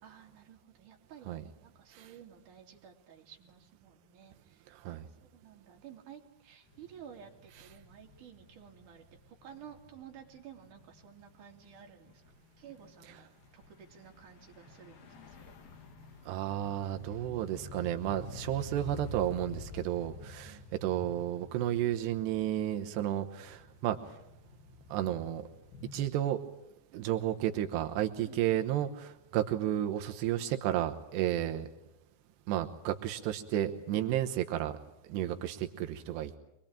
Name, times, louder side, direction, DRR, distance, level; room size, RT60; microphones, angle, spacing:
voice 1, 0.0-12.2 12.6-15.5 20.1-20.7 26.9-27.1 28.2-28.4, right 8 dB, 50° right, 1 dB, 4.1 m, -53 dB
voice 2, 4.7-5.1 16.3-24.0 24.9-25.4 25.9-26.4 26.9-31.7 32.5-34.8 35.1-36.3, right 12 dB, 85° right, 6 dB, 3.2 m, -32 dB
sound 1, 6.6-26.1, left 2 dB, 60° left, 3.8 m, -50 dB
25.0 x 21.5 x 8.9 m, 0.85 s
omnidirectional pair, 4.7 m